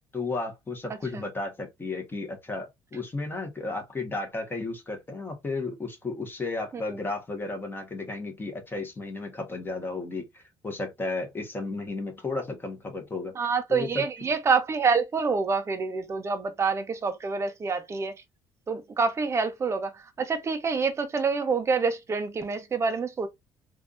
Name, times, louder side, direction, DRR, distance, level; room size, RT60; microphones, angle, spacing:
voice 1, 0.1-14.0, left 3 dB, 20° left, 1.3 m, -34 dB
voice 2, 13.4-18.2 18.7-23.3, right 5 dB, 30° right, 0.6 m, -27 dB
3.4 x 2.6 x 2.5 m
cardioid pair, 95°, 9 cm